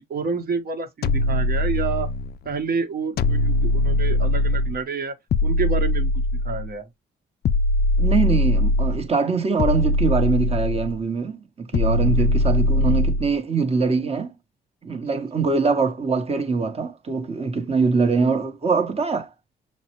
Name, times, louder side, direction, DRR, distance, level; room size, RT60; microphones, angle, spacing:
voice 1, 0.0-2.1 2.4-5.2 5.4-6.9 12.2-12.3, right 5 dB, 50° right, 1.3 m, -29 dB
sound 1, 1.0-2.3 3.2-4.8 5.3-6.7 7.4-9.1 9.6-11.0 11.7-13.3, left 1 dB, 55° left, 0.4 m, -21 dB
voice 2, 8.0-14.3 14.8-19.3, right 4 dB, 30° right, 1.2 m, -23 dB
6.4 x 2.2 x 3.0 m
cardioid pair, 90°, 20 cm